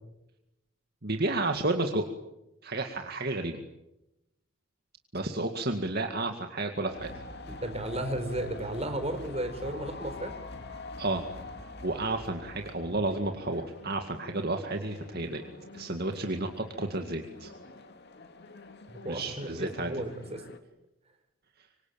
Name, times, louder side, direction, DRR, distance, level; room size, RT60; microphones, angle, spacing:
voice 1, 1.0-2.0 2.6-3.6 5.1-7.1 11.0-11.2 11.8-15.4 15.7-16.5 16.8-17.5 19.1-19.9, right 2 dB, 50° right, 5 dB, 2.1 m, -31 dB
sound 1, 6.9-20.6, left 2 dB, 55° left, 2.5 m, -45 dB
voice 2, 7.5-10.3 18.9-20.4, right 1 dB, 30° right, 7 dB, 4.6 m, -34 dB
25.5 x 25.5 x 9.0 m, 0.91 s
head